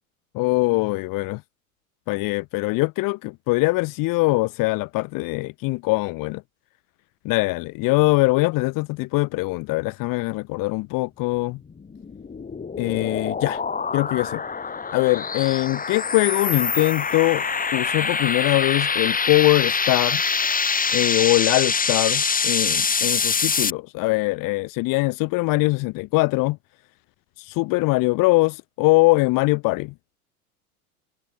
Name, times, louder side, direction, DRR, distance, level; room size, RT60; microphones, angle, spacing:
voice 1, 0.3-1.4 2.1-6.4 7.2-11.6 12.8-13.6 13.9-14.4 14.9-17.4 17.7-20.2 20.9-26.6 27.4-29.9, left 23 dB, 45° left, 3.1 m, -22 dB
sound 1, 11.7-23.7, left 5 dB, 20° left, 6.3 m, -25 dB
figure-of-eight pair, 85°, 45 cm